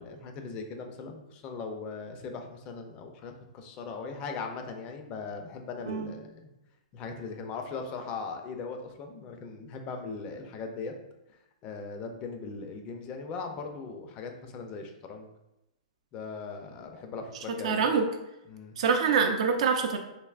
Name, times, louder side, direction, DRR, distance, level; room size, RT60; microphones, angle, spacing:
voice 1, 0.0-6.5 6.9-10.9 11.6-15.3 16.1-17.9 18.5-18.7, left 4 dB, 30° left, 4 dB, 0.4 m, -39 dB
voice 2, 17.6-18.0 18.8-20.0, right 6 dB, 60° right, 4 dB, 0.4 m, -25 dB
3.3 x 2.8 x 2.4 m, 0.93 s
hypercardioid pair, 150°, 4 cm